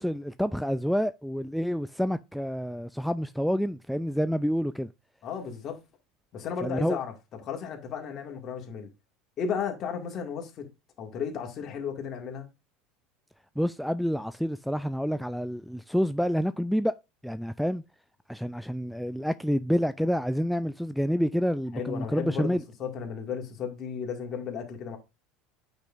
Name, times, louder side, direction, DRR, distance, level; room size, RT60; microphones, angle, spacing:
voice 1, 0.0-4.9 6.6-7.0 13.6-16.9 17.2-17.8 18.3-22.6, equal, ahead, 0.3 m, -28 dB
voice 2, 5.2-5.8 6.3-7.1 7.4-8.9 9.4-10.7 11.0-12.5 21.7-25.0, left 7 dB, 45° left, 2.0 m, -34 dB
8.9 x 5.4 x 2.5 m
hypercardioid pair, 75°, 0 cm